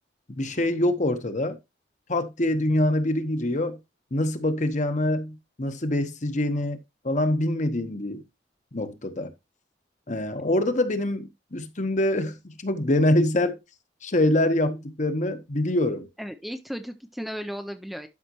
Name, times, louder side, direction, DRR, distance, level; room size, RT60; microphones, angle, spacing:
voice 1, 0.4-1.6 2.1-3.8 4.1-6.8 7.0-8.2 8.7-9.3 10.1-13.6 14.0-16.1, left 1 dB, 45° left, 1.0 m, -25 dB
voice 2, 16.2-18.1, equal, ahead, 0.5 m, -35 dB
12.0 x 5.7 x 3.0 m
head